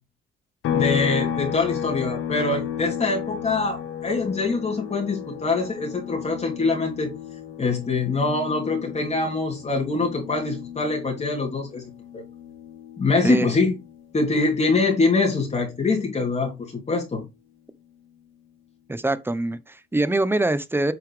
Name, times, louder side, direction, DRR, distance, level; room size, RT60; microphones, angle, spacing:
sound 1, 0.6-14.2 14.5-16.7, left 9 dB, 85° left, 1.4 m, -33 dB
voice 1, 0.7-7.1 7.6-12.2 13.0-13.7 14.1-17.2, left 3 dB, 35° left, 2.9 m, -24 dB
voice 2, 18.9-20.9, right 2 dB, 10° right, 0.9 m, -24 dB
8.8 x 5.6 x 3.3 m
cardioid pair, 90°, 20 cm